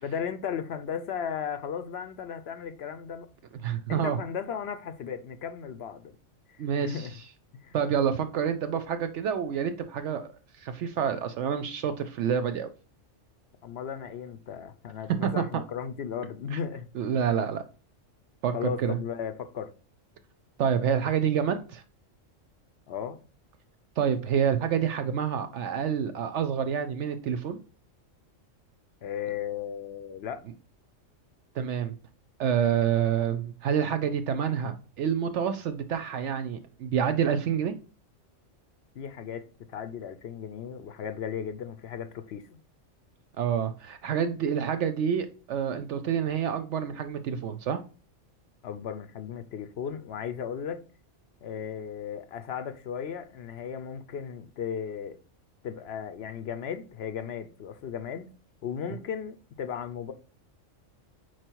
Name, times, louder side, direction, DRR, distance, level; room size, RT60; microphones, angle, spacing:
voice 1, 0.0-3.3 3.9-6.1 6.8-7.1 7.6-7.8 13.6-16.9 17.2-17.4 18.5-19.7 22.9-23.2 29.0-30.4 39.0-42.6 48.6-50.8 51.4-55.2 55.6-58.3 58.6-60.1, left 7 dB, 60° left, 0.8 m, -36 dB
voice 2, 3.6-4.2 6.6-7.1 7.7-10.3 10.6-12.7 15.2-15.4 16.5-16.6 16.9-17.6 18.4-19.0 20.6-21.8 24.0-27.6 31.6-31.9 32.4-37.7 43.4-47.8, right 8 dB, 70° right, 0.8 m, -28 dB
4.8 x 4.5 x 4.5 m
omnidirectional pair, 1.3 m